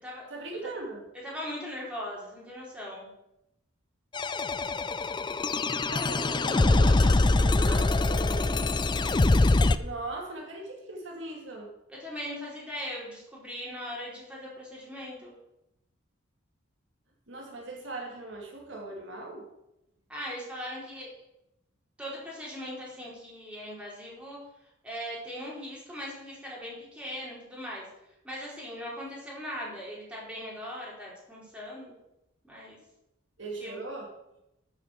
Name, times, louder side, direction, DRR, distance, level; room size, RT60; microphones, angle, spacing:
voice 1, 0.3-1.1 5.9-8.5 9.8-11.7 17.3-19.5 33.4-34.1, right 2 dB, 60° right, 0 dB, 2.4 m, -39 dB
voice 2, 1.2-3.1 11.9-15.3 20.1-21.1 22.0-24.4 24.8-27.9 28.2-31.9 32.4-32.8 33.6-33.8, equal, 5° right, -5 dB, 4.4 m, -39 dB
sound 1, 4.1-9.8, left 2 dB, 20° left, 0.4 m, -24 dB
13.0 x 7.0 x 6.7 m, 0.87 s
head